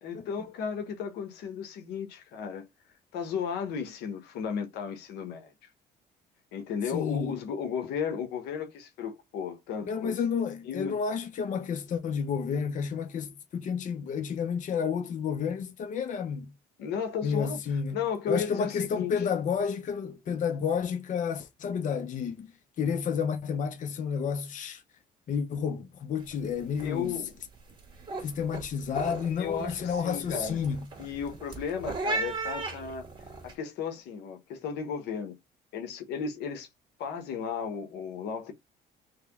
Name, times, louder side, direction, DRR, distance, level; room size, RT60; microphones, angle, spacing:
voice 1, 0.0-2.6 3.1-5.5 6.5-10.2 10.6-11.0 16.8-19.1 26.8-27.3 29.4-30.6 31.0-33.1 33.4-35.4 35.7-36.7 37.0-38.5, left 6 dB, 85° left, 1.0 m, -34 dB
voice 2, 6.9-7.4 9.8-16.5 17.2-18.0 18.3-22.5 22.8-24.8 25.3-27.2 28.2-30.8, left 6 dB, 50° left, 0.8 m, -30 dB
sound 1, 26.2-26.5 26.7-27.2 27.6-33.5, right 3 dB, 30° right, 1.7 m, -37 dB
3.3 x 3.0 x 3.4 m
cardioid pair, 110°, 17 cm